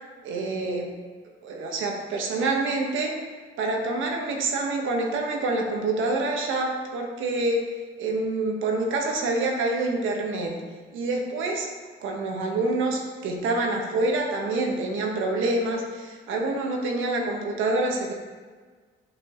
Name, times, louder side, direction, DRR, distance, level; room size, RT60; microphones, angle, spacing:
voice 1, 0.2-0.9 1.4-3.2 3.6-7.7 8.0-10.5 10.9-11.7 12.0-18.1, right 2 dB, 80° right, 1 dB, 1.3 m, -26 dB
8.3 x 6.0 x 3.0 m, 1.5 s
cardioid pair, 90°, 20 cm